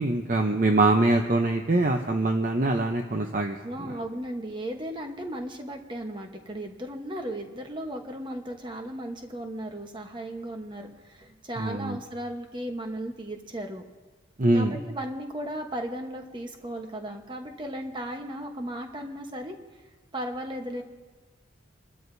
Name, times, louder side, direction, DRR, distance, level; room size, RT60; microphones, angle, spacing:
voice 1, 0.0-3.6 11.6-12.0 14.4-14.7, right 2 dB, 40° right, 3 dB, 0.7 m, -23 dB
voice 2, 3.6-13.8 14.5-19.6 20.1-20.8, right 1 dB, 25° right, 4 dB, 1.0 m, -36 dB
27.5 x 12.5 x 2.7 m, 1.2 s
head